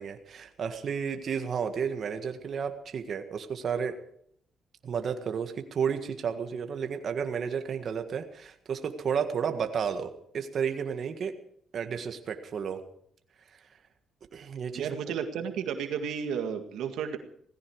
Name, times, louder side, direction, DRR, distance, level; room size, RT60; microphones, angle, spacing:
voice 1, 0.0-4.0 4.8-11.3 11.7-12.8 14.3-14.9, right 7 dB, 55° right, 6 dB, 1.7 m, -32 dB
voice 2, 14.7-17.2, right 7 dB, 85° right, 6 dB, 1.8 m, -32 dB
18.0 x 15.5 x 4.8 m, 0.67 s
cardioid pair, 90°, 0 cm